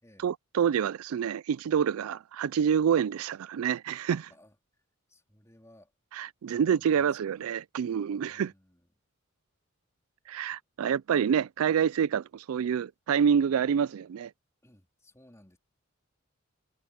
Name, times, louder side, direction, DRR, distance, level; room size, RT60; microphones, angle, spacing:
voice 1, 0.2-4.3 6.1-8.5 10.3-14.3, right 7 dB, 85° right, 0.4 m, -27 dB
voice 2, 4.3-4.8 5.1-5.9 6.5-7.4 8.2-8.9 14.6-15.6, left 1 dB, 15° left, 3.9 m, -59 dB
head